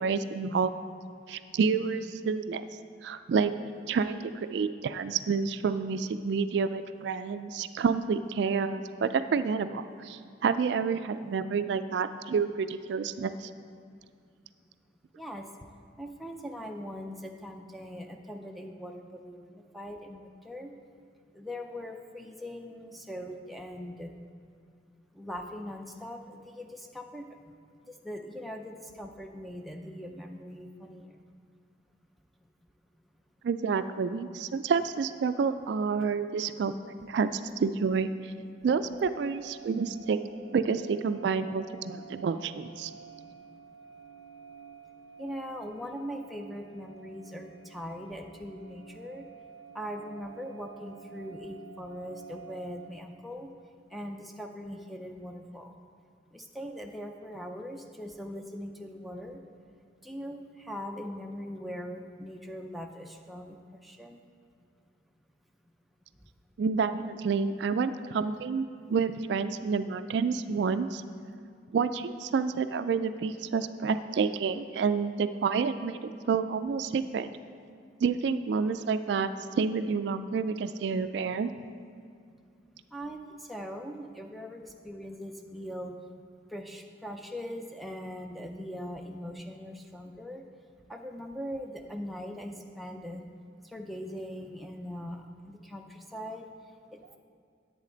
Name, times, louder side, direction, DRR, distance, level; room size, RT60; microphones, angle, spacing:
voice 1, 0.0-0.7 1.3-2.7 3.0-3.5 3.9-13.5 33.4-36.7 37.0-38.3 38.6-40.2 40.5-42.9 66.6-71.0 71.7-77.3 78.0-81.5, right 5 dB, 65° right, 11 dB, 0.3 m, -29 dB
voice 2, 15.2-15.5 16.0-20.7 21.3-24.1 25.1-27.2 27.9-31.1 45.2-49.3 49.7-53.5 53.9-55.7 56.3-59.4 60.0-63.6 63.8-64.2 82.9-85.9 86.5-90.4 90.9-93.3 93.7-96.5, equal, ahead, 2 dB, 0.5 m, -41 dB
sound 1, 38.7-52.9, right 6 dB, 75° left, 0.7 m, -50 dB
10.5 x 8.3 x 3.9 m, 2.2 s
head